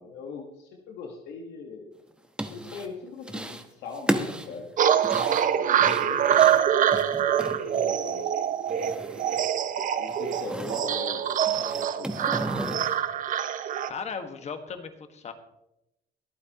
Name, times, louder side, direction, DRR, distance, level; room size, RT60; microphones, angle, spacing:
voice 1, 0.0-1.9 2.5-4.7 5.5-6.2 7.5-8.4 10.0-11.3 11.6-12.5, left 5 dB, 85° left, 2 dB, 1.5 m, -40 dB
sound 1, 2.1-2.9 3.2-3.7 3.9-8.2 8.5-9.5 9.8-10.9 11.3-13.0, right 1 dB, 5° right, 1.1 m, -34 dB
sound 2, 4.8-13.9, right 9 dB, 50° right, 0.8 m, -25 dB
voice 2, 13.5-15.3, left 5 dB, 40° left, 7 dB, 1.6 m, -37 dB
23.5 x 8.8 x 3.0 m, 0.87 s
cardioid pair, 110°, 17 cm